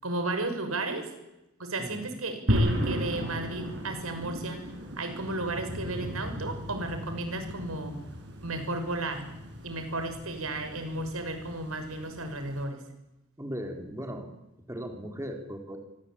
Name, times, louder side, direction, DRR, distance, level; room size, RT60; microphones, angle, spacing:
voice 1, 0.0-1.1 1.6-4.7 5.0-8.0 8.4-9.2 9.6-12.8, right 2 dB, 90° right, 7 dB, 6.0 m, -33 dB
sound 1, 2.5-12.6, equal, 60° right, 7.8 m, -35 dB
voice 2, 13.4-14.3 14.7-15.8, equal, 15° right, 3 dB, 3.9 m, -37 dB
25.5 x 24.5 x 8.8 m, 0.92 s
head